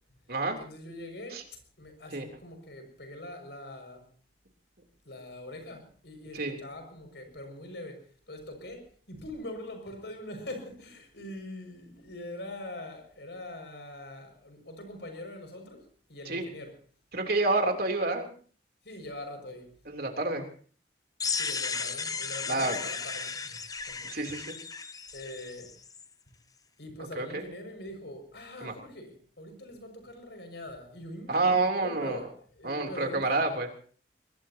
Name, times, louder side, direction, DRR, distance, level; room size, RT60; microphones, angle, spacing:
voice 1, 0.6-4.0 5.0-16.7 18.8-19.7 21.3-24.1 25.1-25.7 26.3-26.4 26.8-32.3 32.5-33.4, left 1 dB, 75° left, 5 dB, 6.3 m, -43 dB
voice 2, 17.1-18.3 19.8-20.5 22.5-22.8 24.1-24.5 27.1-27.4 28.6-28.7 31.3-32.2 32.6-33.7, right 3 dB, 60° right, 3 dB, 3.4 m, -28 dB
sound 1, 21.2-26.0, left 5 dB, 20° left, 0.8 m, -35 dB
22.5 x 21.0 x 2.9 m, 0.43 s
head